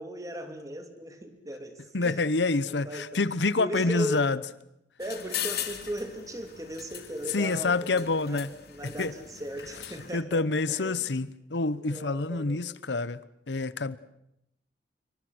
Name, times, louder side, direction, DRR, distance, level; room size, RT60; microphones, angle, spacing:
voice 1, 0.0-2.2 2.7-3.2 3.6-4.3 5.0-11.1 11.8-12.6, equal, 20° right, 3.1 m, -38 dB
voice 2, 1.9-4.4 7.3-8.5 8.8-9.1 10.1-13.2 13.5-14.0, left 3 dB, 85° left, 1.0 m, -27 dB
sound 1, 5.0-10.2, left 10 dB, 65° left, 2.7 m, -39 dB
26.5 x 24.5 x 6.2 m
head